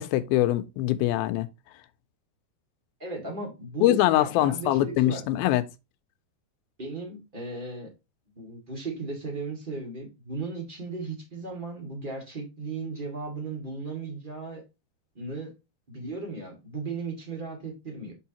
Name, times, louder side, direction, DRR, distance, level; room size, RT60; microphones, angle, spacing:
voice 1, 0.0-1.5 3.8-5.6, left 14 dB, 85° left, 2.4 m, -23 dB
voice 2, 3.0-5.2 6.8-7.9 8.3-14.6 15.1-15.5 15.9-18.1, right 3 dB, 20° right, 1.5 m, -36 dB
6.7 x 5.6 x 2.9 m
omnidirectional pair, 4.3 m